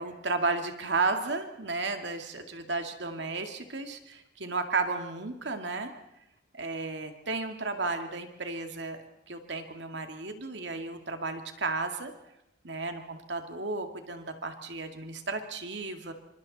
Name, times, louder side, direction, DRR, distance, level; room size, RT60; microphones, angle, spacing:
voice 1, 0.0-5.9 6.5-9.0 9.3-12.1 12.6-16.1, right 3 dB, 65° right, 5 dB, 2.3 m, -33 dB
27.5 x 26.0 x 4.2 m, 0.90 s
head